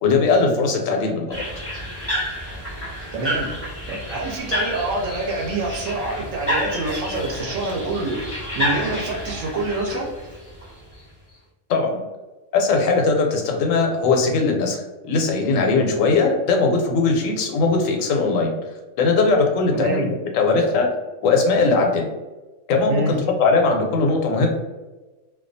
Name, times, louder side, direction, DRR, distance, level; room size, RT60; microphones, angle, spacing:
voice 1, 0.0-1.4 11.7-12.0 12.5-18.5 19.0-20.1 20.3-20.9 21.2-22.1 22.7-24.5, left 3 dB, 90° left, 1 dB, 1.0 m, -19 dB
sound 1, 1.3-11.0, equal, 15° left, 0.6 m, -29 dB
voice 2, 3.1-3.5 3.9-10.1 19.7-20.1 22.9-23.1, right 2 dB, 80° right, -2 dB, 0.9 m, -26 dB
2.3 x 2.3 x 2.5 m, 1.2 s
omnidirectional pair, 1.3 m